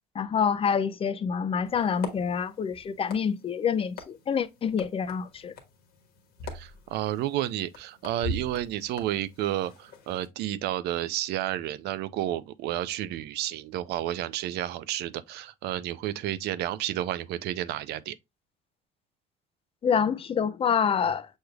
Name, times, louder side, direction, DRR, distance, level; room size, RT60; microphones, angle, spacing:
voice 1, 0.2-5.5 19.8-21.3, left 7 dB, 35° left, 0.4 m, -27 dB
sound 1, 1.7-10.3, left 2 dB, 65° left, 1.3 m, -42 dB
voice 2, 6.5-18.2, right 13 dB, 80° right, 0.4 m, -31 dB
6.3 x 3.2 x 2.3 m
cardioid pair, 110°, 17 cm